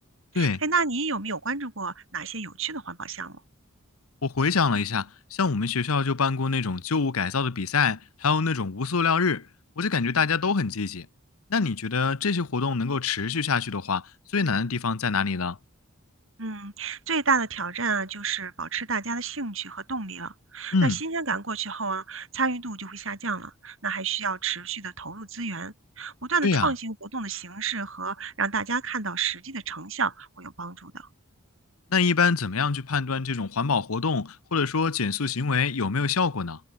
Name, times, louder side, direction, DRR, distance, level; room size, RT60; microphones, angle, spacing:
voice 1, 0.3-3.4 16.4-31.1, right 4 dB, 65° right, 5.6 m, -30 dB
voice 2, 4.2-9.5 9.8-11.1 11.5-14.0 14.3-15.6 20.7-21.0 26.4-26.7 31.9-36.6, left 5 dB, 85° left, 0.9 m, -25 dB
head